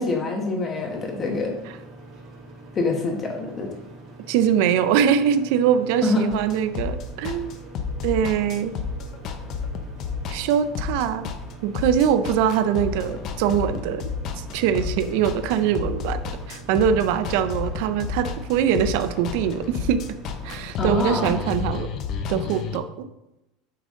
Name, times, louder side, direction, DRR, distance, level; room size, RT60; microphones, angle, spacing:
voice 1, 0.0-1.6 2.7-3.7 6.0-6.3 20.8-21.4, left 3 dB, 25° left, 2 dB, 1.4 m, -25 dB
sound 1, 0.8-20.6, right 1 dB, 50° right, 2.3 m, -44 dB
voice 2, 4.3-7.6 8.0-8.7 10.3-11.3 11.6-14.1 14.4-16.2 16.5-20.0 20.4-21.9 22.3-23.1, right 8 dB, 70° right, 12 dB, 0.4 m, -23 dB
sound 2, 6.3-22.8, left 5 dB, 45° left, 0.7 m, -31 dB
8.5 x 3.7 x 3.8 m, 0.93 s
supercardioid pair, 130°, 0 cm